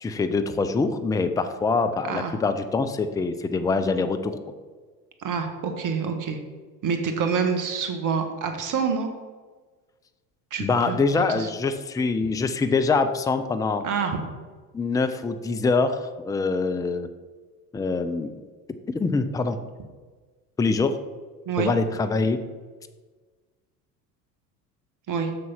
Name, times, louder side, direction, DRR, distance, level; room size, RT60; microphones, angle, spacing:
voice 1, 0.0-4.4 10.6-13.8 14.7-17.1 17.7-18.3 18.9-19.6 20.6-21.0 21.6-22.4, left 4 dB, 10° left, 9 dB, 0.5 m, -24 dB
voice 2, 5.2-6.4 6.8-9.1 10.5-11.0 11.3-11.5 13.8-14.2 21.4-21.7 25.1-25.3, right 6 dB, 40° right, 5 dB, 1.5 m, -26 dB
6.8 x 6.6 x 5.6 m, 1.4 s
figure-of-eight pair, 65°, 47 cm